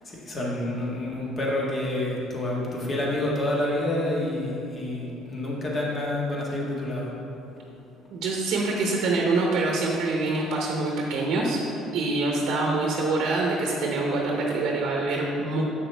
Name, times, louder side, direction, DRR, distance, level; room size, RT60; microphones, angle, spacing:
voice 1, 0.0-7.1, left 1 dB, 35° left, -3 dB, 1.6 m, -28 dB
voice 2, 8.1-11.6 11.9-15.6, right 3 dB, 70° right, -1 dB, 0.8 m, -25 dB
7.2 x 6.0 x 3.4 m, 2.8 s
supercardioid pair, 90°, 0 cm